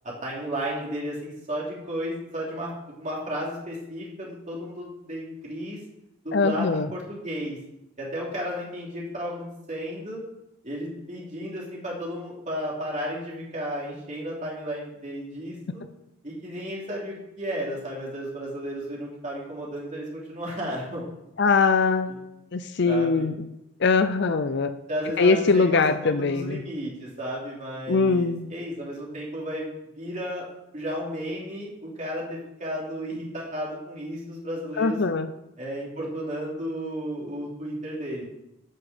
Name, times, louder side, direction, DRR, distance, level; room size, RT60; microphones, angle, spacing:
voice 1, 0.0-2.7 3.0-5.8 6.2-7.6 8.0-10.2 10.6-15.8 16.2-21.0 22.9-23.3 24.9-29.7 29.9-30.5 30.7-35.0 35.6-38.2, equal, 35° right, -4 dB, 3.2 m, -33 dB
voice 2, 6.3-6.9 21.4-22.1 22.5-23.3 23.8-24.7 25.2-26.6 27.9-28.5 34.8-35.3, left 4 dB, 55° left, 11 dB, 0.6 m, -22 dB
13.0 x 6.1 x 5.1 m, 0.89 s
head